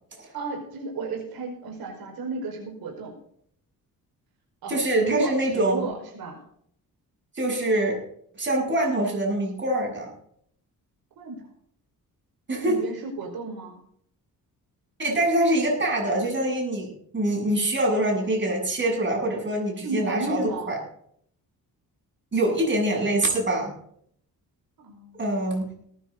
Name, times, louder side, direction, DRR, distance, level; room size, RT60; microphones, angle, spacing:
voice 1, 0.3-3.1 4.6-6.4 11.2-11.5 12.6-13.7 19.8-20.8 24.8-25.3, right 3 dB, 90° right, 1 dB, 4.9 m, -33 dB
voice 2, 4.7-5.8 7.3-8.0 8.4-10.1 12.5-12.8 15.0-20.8 22.3-23.7 25.2-25.6, right 1 dB, 30° right, -1 dB, 7.9 m, -24 dB
20.0 x 10.5 x 3.9 m, 0.64 s
cardioid pair, 125°, 35 cm